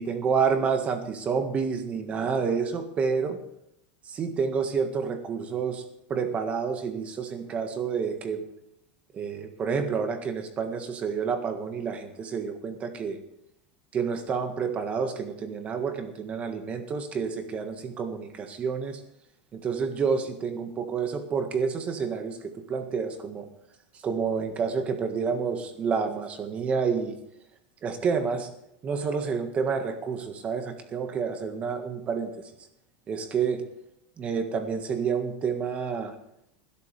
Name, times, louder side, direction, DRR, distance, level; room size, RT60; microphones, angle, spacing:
voice 1, 0.0-3.4 4.1-5.8 6.1-8.4 9.1-13.2 13.9-19.0 19.5-23.5 24.0-27.2 27.8-28.5 28.8-32.5 33.1-33.6 34.2-36.1, right 6 dB, 25° right, 7 dB, 1.7 m, -29 dB
20.0 x 12.0 x 3.4 m, 0.77 s
supercardioid pair, 160°, 6 cm